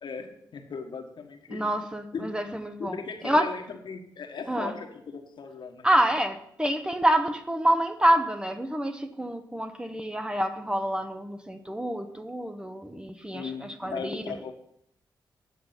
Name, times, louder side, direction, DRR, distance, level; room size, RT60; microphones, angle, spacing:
voice 1, 0.0-1.6 2.1-2.3 2.8-5.9 13.3-14.5, left 5 dB, 70° left, 4 dB, 1.4 m, -38 dB
voice 2, 1.5-3.5 4.5-4.7 5.8-14.5, right 1 dB, 10° right, 8 dB, 1.0 m, -27 dB
9.5 x 6.4 x 5.7 m, 0.72 s
cardioid pair, 60°, 8 cm